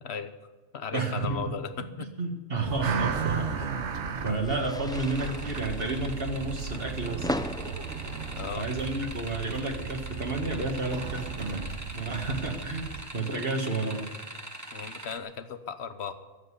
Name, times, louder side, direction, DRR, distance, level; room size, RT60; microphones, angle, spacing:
voice 1, 0.0-0.3 0.7-2.1 2.8-3.0 8.3-8.7 14.7-16.1, left 6 dB, 70° left, 11 dB, 1.3 m, -36 dB
voice 2, 0.9-1.4 2.0-3.7 4.2-7.3 8.6-14.0, right 3 dB, 55° right, 2 dB, 1.9 m, -31 dB
sound 1, 2.5-13.0, right 5 dB, 80° right, 1.3 m, -35 dB
sound 2, 3.1-8.5, left 1 dB, 5° left, 0.4 m, -39 dB
sound 3, 4.9-15.2, right 1 dB, 15° right, 1.3 m, -43 dB
14.0 x 8.0 x 9.8 m, 1.3 s
omnidirectional pair, 1.2 m